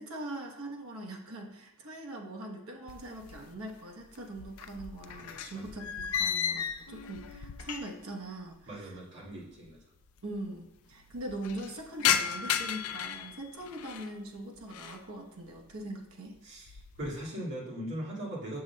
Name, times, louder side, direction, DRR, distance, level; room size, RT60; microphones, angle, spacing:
voice 1, 0.0-9.0 10.2-16.4, right 1 dB, 85° right, 1 dB, 1.0 m, -42 dB
sound 1, 2.9-3.8 4.0-8.1 8.4-8.5 9.4-9.5 9.6-9.7 10.0-10.5 10.9-14.1 14.6-15.1 15.5-15.9 16.3-17.2, left 8 dB, 80° left, 0.4 m, -34 dB
voice 2, 8.7-9.8 16.4-16.7 17.0-18.6, equal, 60° right, -5 dB, 2.0 m, -39 dB
7.2 x 6.6 x 2.2 m, 0.85 s
head